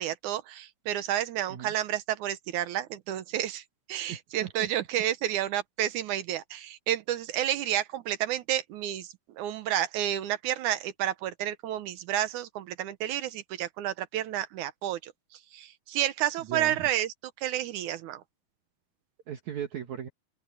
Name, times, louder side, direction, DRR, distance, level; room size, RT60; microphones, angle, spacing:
voice 1, 0.0-3.6 3.9-15.1 15.5-18.2, right 12 dB, 75° right, 1.9 m, -30 dB
voice 2, 4.1-4.7 16.4-16.9 19.3-20.1, right 9 dB, 60° right, 2.4 m, -37 dB
open air
omnidirectional pair, 4.5 m